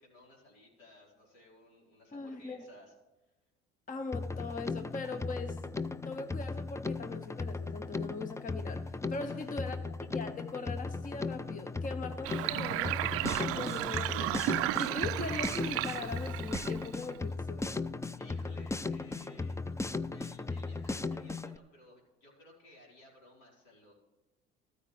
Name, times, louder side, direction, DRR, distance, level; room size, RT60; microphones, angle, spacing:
voice 1, 0.0-2.9 9.2-9.7 18.2-19.6 20.0-23.9, left 1 dB, 75° left, -3 dB, 4.6 m, -57 dB
voice 2, 2.1-2.6 3.9-5.6 6.0-9.8 10.1-14.5 14.8-17.8, left 3 dB, 30° left, 7 dB, 1.0 m, -41 dB
Drum kit, 4.1-21.6, left 3 dB, 10° left, 0.5 m, -37 dB
Sink (filling or washing), 12.2-17.2, right 17 dB, 55° right, 0.4 m, -34 dB
14.0 x 13.0 x 3.4 m, 1.1 s
hypercardioid pair, 65°, 29 cm